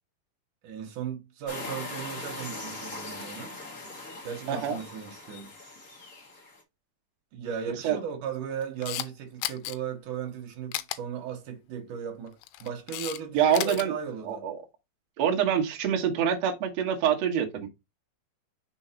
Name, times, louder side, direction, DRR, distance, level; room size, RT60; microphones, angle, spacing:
voice 1, 0.6-3.6 4.2-5.5 7.3-14.5, right 8 dB, 65° right, 2.1 m, -37 dB
sound 1, 1.5-6.6, left 2 dB, 60° left, 0.8 m, -40 dB
voice 2, 7.7-8.0 13.3-13.9 14.2-14.6 15.2-17.7, right 8 dB, 90° right, 1.4 m, -26 dB
Camera, 8.6-9.1 9.4-9.8 10.7-11.0 12.3-13.2 13.4-13.9, left 15 dB, 85° left, 2.9 m, -33 dB
6.2 x 3.9 x 4.4 m
omnidirectional pair, 5.3 m